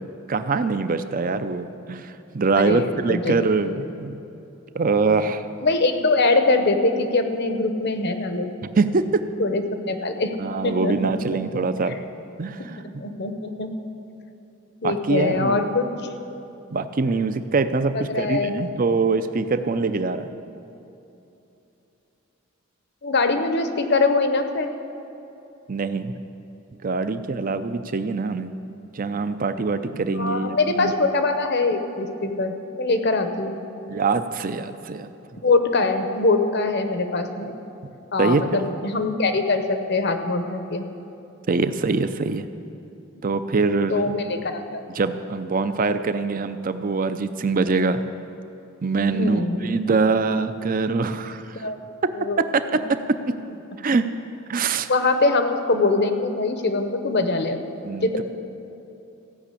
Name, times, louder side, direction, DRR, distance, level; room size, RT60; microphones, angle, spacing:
voice 1, 0.3-4.2 4.7-5.5 8.8-9.2 10.4-12.0 12.4-12.8 14.8-15.7 16.7-20.3 25.7-26.1 26.8-28.5 28.9-30.9 33.9-35.1 38.2-38.6 41.5-42.4 43.2-44.1 45.0-48.0 48.8-51.6 52.5-52.6 53.8-54.0 54.5-54.9 57.8-58.2, right 4 dB, 45° right, 11 dB, 0.5 m, -23 dB
voice 2, 2.6-3.4 5.6-8.5 9.4-10.3 10.6-11.2 11.9-12.0 13.0-13.7 14.8-15.8 17.9-18.5 23.0-24.7 30.1-33.6 35.4-37.5 38.1-40.8 43.9-44.8 49.1-49.7 51.6-51.8 52.1-52.4 54.9-57.6 58.0-58.2, left 3 dB, 55° left, 7 dB, 0.9 m, -23 dB
15.5 x 6.0 x 8.4 m, 2.9 s
head